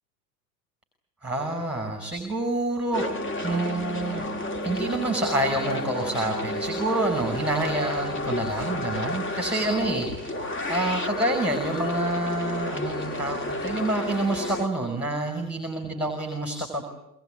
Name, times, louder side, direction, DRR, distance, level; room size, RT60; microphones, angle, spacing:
voice 1, 1.2-3.1 3.4-4.2 4.6-16.8, right 2 dB, 5° right, 4 dB, 5.7 m, -28 dB
sound 1, 2.9-14.7, left 1 dB, 25° left, 2.1 m, -31 dB
25.0 x 22.0 x 9.3 m, 0.84 s
hypercardioid pair, 85°, 47 cm